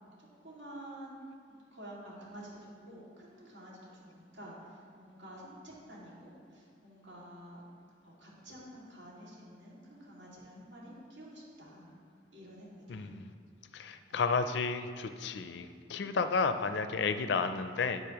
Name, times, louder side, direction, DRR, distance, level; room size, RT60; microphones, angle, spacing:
voice 1, 0.4-1.1 1.5-7.6 8.0-11.9 12.3-13.1 14.1-14.2 16.0-16.1, right 1 dB, 75° right, -5 dB, 2.2 m, -50 dB
voice 2, 12.9-13.3 13.7-18.0, left 4 dB, 60° left, 10 dB, 0.4 m, -32 dB
9.2 x 8.3 x 3.0 m, 2.2 s
head